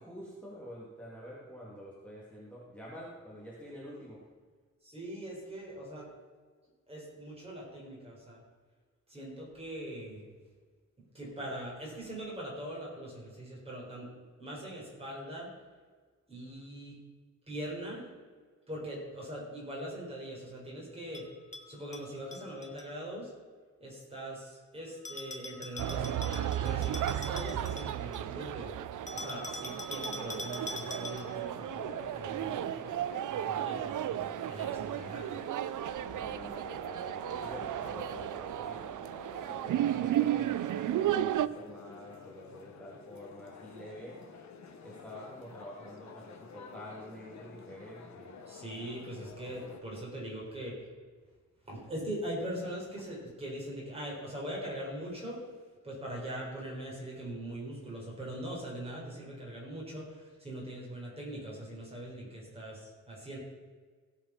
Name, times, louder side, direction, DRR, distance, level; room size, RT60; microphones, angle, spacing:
voice 1, 0.0-4.2 36.1-38.9 39.4-44.2 44.8-48.3, equal, 5° left, -7 dB, 2.4 m, -47 dB
voice 2, 4.8-6.1 6.9-8.4 9.1-10.3 11.1-14.1 14.4-15.5 16.3-17.0 17.5-18.1 18.7-21.3 21.7-23.3 23.8-28.7 29.1-32.9 33.3-35.3 48.5-50.9 51.7-55.4 55.8-63.4, right 1 dB, 20° right, -4 dB, 4.1 m, -41 dB
Bell, 21.1-22.9 25.1-28.3 29.1-31.5, left 2 dB, 25° left, 1.2 m, -44 dB
sound 1, 25.8-41.5, right 12 dB, 85° right, 0.5 m, -34 dB
sound 2, 30.1-49.8, left 5 dB, 65° left, 1.3 m, -50 dB
17.0 x 5.8 x 5.8 m, 1.5 s
wide cardioid pair, 175°, 30 cm